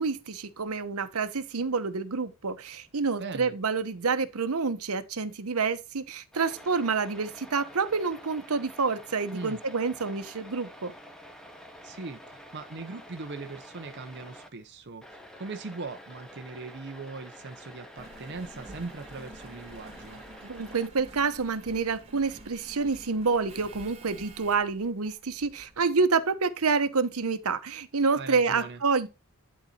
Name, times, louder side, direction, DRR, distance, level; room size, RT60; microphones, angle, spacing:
voice 1, 0.0-10.9 20.4-29.1, right 4 dB, 80° right, 0.9 m, -28 dB
voice 2, 3.2-3.5 9.3-9.6 11.8-20.2 28.2-28.8, right 3 dB, 50° right, 0.7 m, -40 dB
sound 1, 6.3-14.5 15.0-20.9, equal, 5° left, 1.0 m, -48 dB
Engine, 18.0-25.8 26.4-26.5, right 2 dB, 30° right, 2.0 m, -49 dB
11.0 x 4.0 x 4.2 m
head